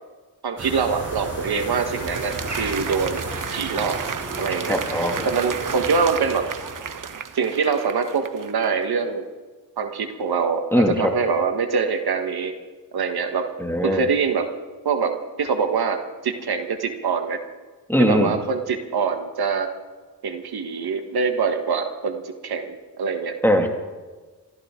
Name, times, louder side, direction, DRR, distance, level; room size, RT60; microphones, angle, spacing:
voice 1, 0.4-3.2 3.5-4.0 4.4-4.8 5.2-6.5 7.3-9.2 9.8-12.6 12.9-13.5 13.8-14.5 14.8-17.4 18.0-19.7 20.2-23.4, right 5 dB, 70° right, 7 dB, 1.5 m, -24 dB
sound 1, 0.6-7.3, right 2 dB, 40° right, 6.3 m, -34 dB
Applause, 1.2-8.8, right 7 dB, 55° right, 1.0 m, -33 dB
voice 2, 4.7-5.3 10.7-11.1 13.6-14.0 17.9-18.3 23.4-23.7, equal, 5° left, 2 dB, 2.3 m, -20 dB
23.5 x 14.5 x 3.8 m, 1.4 s
cardioid pair, 75°, 39 cm